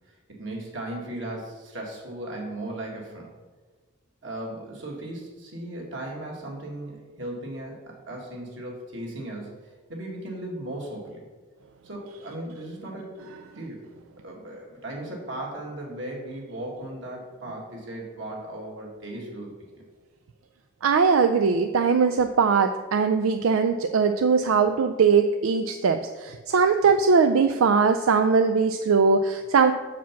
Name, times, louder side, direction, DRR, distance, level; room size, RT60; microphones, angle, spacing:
voice 1, 0.3-3.3 4.2-9.6 9.9-11.2 11.8-13.2 13.6-13.9 14.2-19.8, right 1 dB, 65° right, -2 dB, 2.0 m, -37 dB
voice 2, 20.8-29.7, right 5 dB, 85° right, 7 dB, 0.4 m, -21 dB
7.0 x 4.9 x 5.8 m, 1.3 s
head